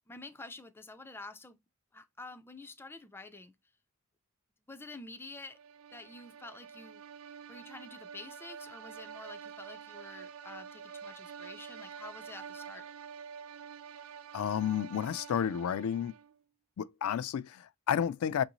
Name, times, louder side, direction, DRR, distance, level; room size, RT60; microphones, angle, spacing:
voice 1, 0.1-1.6 1.9-3.5 4.7-5.6 5.9-7.0 7.5-12.9, left 3 dB, 10° left, 0.4 m, -48 dB
sound 1, 5.4-16.4, right 7 dB, 65° right, 0.4 m, -48 dB
voice 2, 14.3-16.2 16.8-18.4, left 8 dB, 80° left, 0.3 m, -31 dB
6.0 x 2.6 x 2.8 m
head